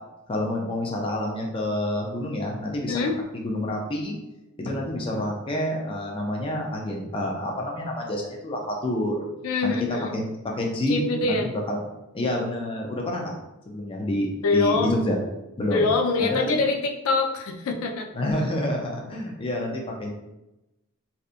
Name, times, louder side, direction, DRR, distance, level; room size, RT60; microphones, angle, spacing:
voice 1, 0.3-3.0 3.4-4.2 4.6-9.2 9.6-9.7 10.1-10.3 10.5-11.8 12.1-13.3 13.7-15.2 15.6-15.9 16.2-16.4 18.1-20.1, left 1 dB, 25° left, 0 dB, 0.4 m, -28 dB
voice 2, 9.4-10.2 10.9-11.5 14.4-15.0 15.7-18.1, left 3 dB, 90° left, 2 dB, 0.4 m, -24 dB
2.7 x 2.2 x 2.4 m, 0.94 s
head